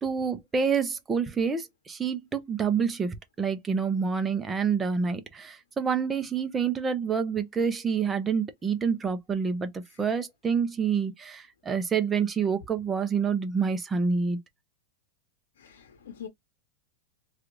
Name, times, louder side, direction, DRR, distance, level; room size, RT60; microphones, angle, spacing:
voice 1, 0.0-14.4, right 6 dB, 15° right, 0.7 m, -27 dB
voice 2, 15.6-16.3, left 8 dB, 85° left, 0.9 m, -44 dB
3.2 x 2.4 x 3.1 m
supercardioid pair, 130°, 0 cm